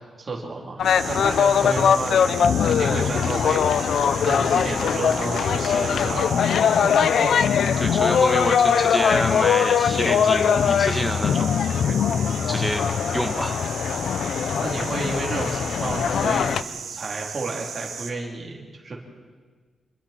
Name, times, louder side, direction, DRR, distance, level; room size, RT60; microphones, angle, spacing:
voice 1, 0.2-0.8 1.1-2.2 2.6-3.9 4.2-6.9 7.2-7.3 14.6-16.7 16.9-19.0, right 3 dB, 30° right, -1 dB, 3.4 m, -31 dB
sound 1, 0.8-16.6, left 7 dB, 70° left, 0.5 m, -21 dB
sound 2, 0.8-18.1, right 6 dB, 85° right, 2.1 m, -36 dB
voice 2, 7.8-11.5 11.9-12.0 12.5-12.8 13.1-13.6, equal, ahead, 6 dB, 1.4 m, -27 dB
27.5 x 21.5 x 4.4 m, 1.5 s
wide cardioid pair, 170°, 0 cm